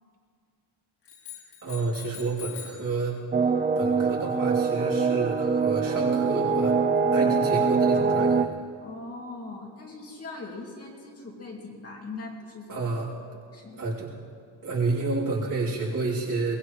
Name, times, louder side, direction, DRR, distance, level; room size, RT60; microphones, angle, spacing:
sound 1, 1.1-2.9, left 10 dB, 60° left, 4.1 m, -43 dB
voice 1, 1.6-3.2 3.7-6.8 7.1-8.5 12.7-13.1 13.8-14.1 14.6-16.5, right 3 dB, 45° right, -5 dB, 3.4 m, -30 dB
sound 2, 3.3-8.5, right 5 dB, 25° right, 0.5 m, -23 dB
voice 2, 8.8-12.9 13.5-13.8, left 3 dB, 30° left, -2 dB, 2.5 m, -40 dB
22.5 x 19.5 x 3.2 m, 2.2 s
wide cardioid pair, 175°, 46 cm